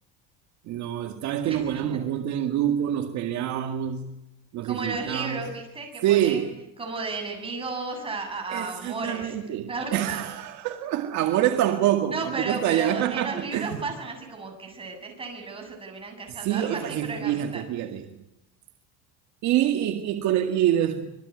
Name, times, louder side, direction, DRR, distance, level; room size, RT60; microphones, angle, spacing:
voice 1, 0.7-4.1 4.5-5.4 6.0-6.5 8.5-13.8 16.4-18.1 19.4-21.1, right 11 dB, 55° right, 2.0 m, -26 dB
voice 2, 1.4-2.0 4.6-6.5 6.8-9.4 9.7-10.2 12.1-17.6, right 3 dB, 15° right, 7.8 m, -34 dB
26.5 x 21.5 x 9.6 m
cardioid pair, 145°, 34 cm